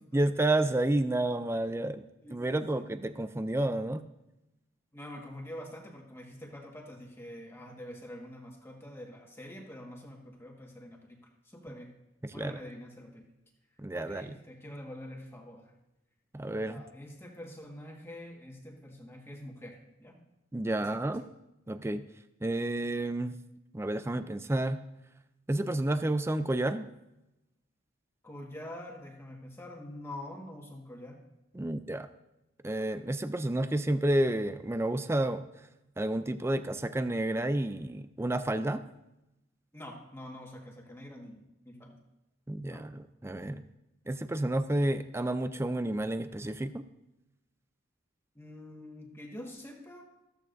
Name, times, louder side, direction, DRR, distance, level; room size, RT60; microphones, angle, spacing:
voice 1, 0.0-2.0 2.3-4.0 12.2-12.6 13.8-14.4 16.3-16.8 20.5-21.2 21.7-22.1 22.4-23.4 23.7-24.8 25.5-26.9 31.6-32.1 32.6-35.7 36.0-38.8 42.5-43.7 44.1-46.8, right 1 dB, 15° right, 11 dB, 0.4 m, -30 dB
voice 2, 2.2-2.9 4.9-11.2 11.4-11.9 12.3-13.3 13.9-15.7 16.5-20.2 20.8-21.3 28.2-31.2 39.7-42.0 42.7-42.8 48.4-50.0, left 1 dB, 15° left, 0 dB, 1.6 m, -46 dB
14.0 x 13.5 x 2.6 m, 0.93 s
head